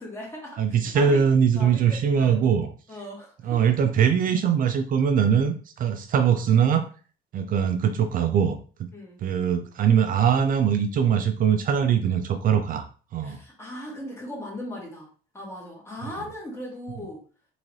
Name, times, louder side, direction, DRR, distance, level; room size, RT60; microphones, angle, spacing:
voice 1, 0.0-1.2 1.5-2.4 2.9-3.6 8.9-9.2 13.2-15.1 15.3-17.2, left 1 dB, 15° left, -3 dB, 2.1 m, -38 dB
voice 2, 0.6-2.7 3.4-6.9 7.3-8.9 9.2-12.9 13.1-13.4, right 7 dB, 55° right, 7 dB, 0.5 m, -22 dB
3.9 x 3.8 x 3.2 m, 0.40 s
cardioid pair, 110°, 17 cm